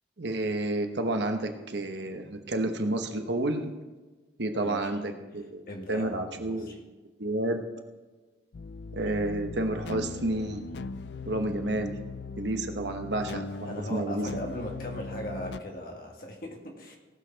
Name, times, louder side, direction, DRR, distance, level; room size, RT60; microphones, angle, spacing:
voice 1, 0.2-3.7 4.4-5.6 5.9-6.8 7.2-7.7 8.9-10.6 11.3-11.9 12.4-14.4, right 1 dB, 70° right, 5 dB, 1.1 m, -30 dB
voice 2, 4.5-5.0 5.7-6.8 13.6-17.0, equal, 50° left, 1 dB, 1.8 m, -39 dB
sound 1, 8.5-15.6, left 3 dB, 70° left, 0.4 m, -39 dB
18.0 x 6.5 x 4.5 m, 1.2 s
head